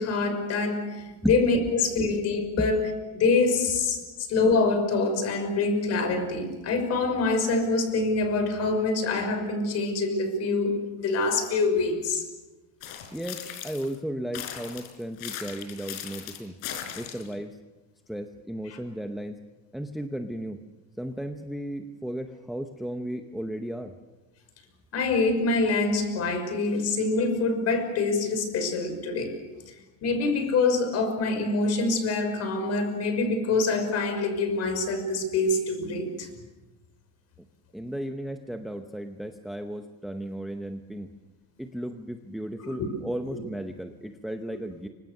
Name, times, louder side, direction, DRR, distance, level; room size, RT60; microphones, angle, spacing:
voice 1, 0.0-2.8 3.1-4.0 4.3-12.2 18.7-18.8 24.9-29.3 29.7-29.8 30.0-36.3 42.6-42.7 43.3-43.4, left 3 dB, 40° left, 7 dB, 5.8 m, -25 dB
sound 1, 12.8-14.0 14.3-17.3, left 10 dB, 55° left, 4.7 m, -38 dB
voice 2, 13.1-16.5 17.0-17.6 18.1-19.4 19.7-20.6 21.0-23.9 37.7-41.1 41.6-44.9, equal, ahead, 5 dB, 0.8 m, -34 dB
29.5 x 25.0 x 6.6 m, 1.1 s
cardioid pair, 165°, 40 cm